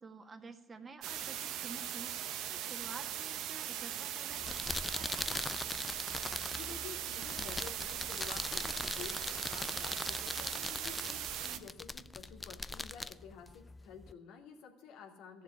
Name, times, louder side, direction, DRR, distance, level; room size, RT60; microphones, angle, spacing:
voice 1, 0.0-2.1 2.5-5.5, right 4 dB, 35° right, 7 dB, 1.8 m, -50 dB
sound 1, 1.0-11.6, right 10 dB, 70° right, 1.1 m, -40 dB
sound 2, 4.3-14.1, left 2 dB, 20° left, 0.5 m, -41 dB
voice 2, 6.5-15.4, left 7 dB, 70° left, 2 dB, 2.5 m, -51 dB
14.5 x 7.4 x 9.8 m, 1.0 s
hypercardioid pair, 60°, 0 cm